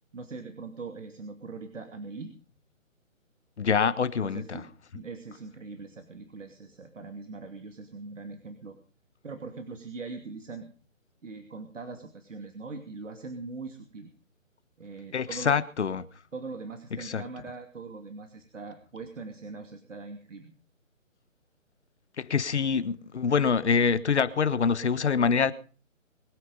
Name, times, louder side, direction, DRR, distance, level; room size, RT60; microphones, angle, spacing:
voice 1, 0.1-2.3 4.2-8.8 9.2-10.7 11.2-14.1 14.8-15.6 16.3-20.5, right 4 dB, 65° right, 2.7 m, -41 dB
voice 2, 3.6-4.6 15.1-16.0 17.0-17.2 22.2-25.5, left 6 dB, 55° left, 1.4 m, -25 dB
22.5 x 9.3 x 5.4 m
figure-of-eight pair, 155°, 39 cm